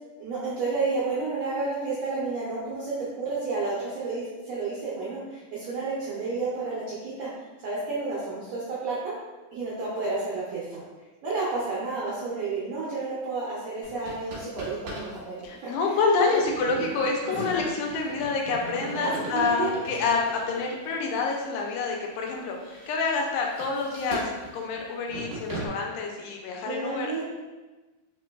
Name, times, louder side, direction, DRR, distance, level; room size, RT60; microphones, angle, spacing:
voice 1, 0.2-7.3 7.6-9.1 9.5-10.8 11.2-15.7 16.2-16.4 19.0-19.7 26.7-27.2, right 3 dB, 80° right, -8 dB, 1.4 m, -31 dB
sound 1, 13.8-15.2 15.4-15.5 16.3-21.1 21.7-21.8 22.3-25.7, right 2 dB, 60° right, 1.8 m, -38 dB
voice 2, 15.4-24.2 24.5-27.2, left 4 dB, 80° left, 0 dB, 2.2 m, -27 dB
5.1 x 3.6 x 2.2 m, 1.2 s
omnidirectional pair, 4.0 m